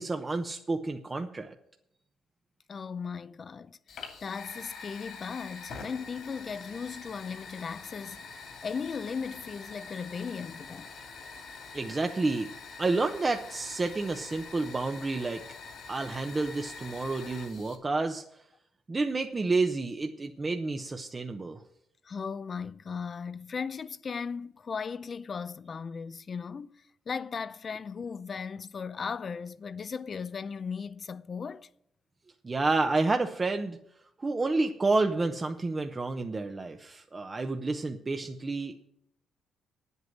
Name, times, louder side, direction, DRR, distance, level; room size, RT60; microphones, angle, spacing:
voice 1, 0.0-1.5 11.7-12.5 12.8-15.4 15.9-18.2 18.9-21.6 32.4-33.8 34.2-38.8, right 3 dB, 25° right, 0.9 m, -29 dB
voice 2, 2.7-10.9 22.0-26.7 27.1-31.7, left 5 dB, 40° left, 0.6 m, -37 dB
Fire, 3.9-17.8, left 4 dB, 70° left, 2.7 m, -45 dB
9.3 x 8.2 x 7.9 m
cardioid pair, 90°, 0 cm